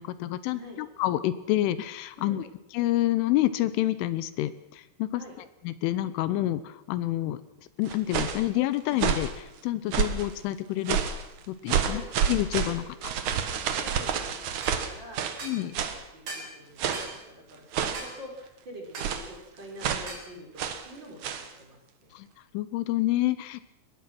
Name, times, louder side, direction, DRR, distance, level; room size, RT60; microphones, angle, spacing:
voice 1, 0.0-2.5 2.7-5.2 5.7-7.4 7.8-11.0 11.5-12.0 12.3-13.1 15.4-15.8 22.1-22.3 22.6-23.6, left 15 dB, 85° left, 15 dB, 3.4 m, -28 dB
sound 1, 7.9-8.5 8.9-9.4 9.9-10.3 10.9-11.2 11.7-15.4 15.7-16.0 16.8-17.2 17.7-18.1 19.0-19.3 19.8-20.1 20.6-20.9 21.2-21.5, right 7 dB, 70° right, 1.8 m, -29 dB
voice 2, 11.7-12.1 12.6-12.9 13.7-21.2 21.6-22.1, equal, 25° right, 1 dB, 4.4 m, -46 dB
sound 2, 14.6-14.8 15.4-15.6 16.3-16.5 16.9-17.1 17.9-18.2 19.0-19.2 20.1-20.3, right 3 dB, 50° right, 5.6 m, -39 dB
23.0 x 19.5 x 6.1 m, 0.88 s
omnidirectional pair, 5.6 m